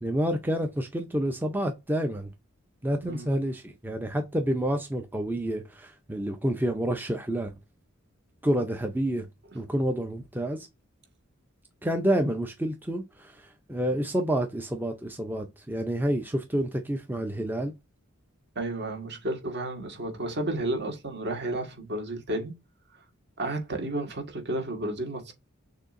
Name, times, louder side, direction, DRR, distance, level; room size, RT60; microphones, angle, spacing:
voice 1, 0.0-2.3 2.8-7.5 8.4-9.3 9.5-10.7 11.8-17.7, right 1 dB, 10° right, 0.6 m, -29 dB
voice 2, 18.6-22.5 23.4-25.3, right 1 dB, 55° right, 1.6 m, -32 dB
6.6 x 2.7 x 2.5 m
head